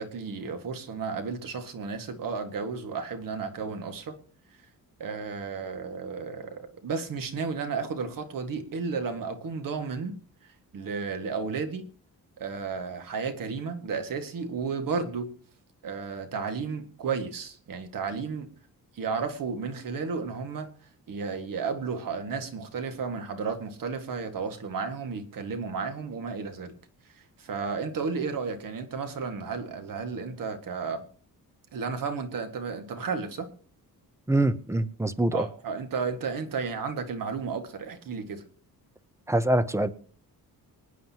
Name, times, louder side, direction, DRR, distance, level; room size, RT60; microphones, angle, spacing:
voice 1, 0.0-4.2 5.0-10.2 10.7-11.9 12.4-15.3 15.8-18.5 18.9-20.7 21.1-26.7 27.1-31.0 31.7-33.5 35.3-38.4, right 5 dB, 60° right, 1.9 m, -33 dB
voice 2, 34.3-35.5 39.3-39.9, right 1 dB, 10° right, 0.6 m, -24 dB
26.0 x 9.3 x 2.9 m
wide cardioid pair, 155°, 37 cm